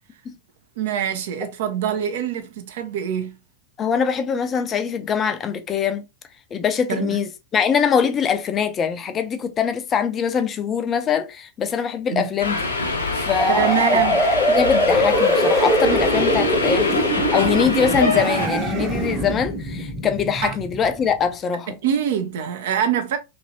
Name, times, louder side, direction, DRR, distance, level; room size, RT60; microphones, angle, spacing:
voice 1, 0.8-3.3 6.9-7.1 12.1-12.3 13.5-14.2 20.4-20.5 21.8-23.2, right 9 dB, 55° right, 0.5 m, -24 dB
voice 2, 3.8-6.0 6.5-12.7 13.1-13.8 14.5-17.0 17.3-21.7, left 7 dB, 25° left, 0.4 m, -23 dB
Subway metro underground, 12.4-18.5, left 3 dB, 75° left, 0.6 m, -24 dB
sound 1, 13.4-21.1, equal, 5° left, 0.8 m, -22 dB
sound 2, 15.0-16.6 17.9-19.6, right 3 dB, 35° right, 1.1 m, -30 dB
2.9 x 2.7 x 2.6 m
figure-of-eight pair, 90°, 0 cm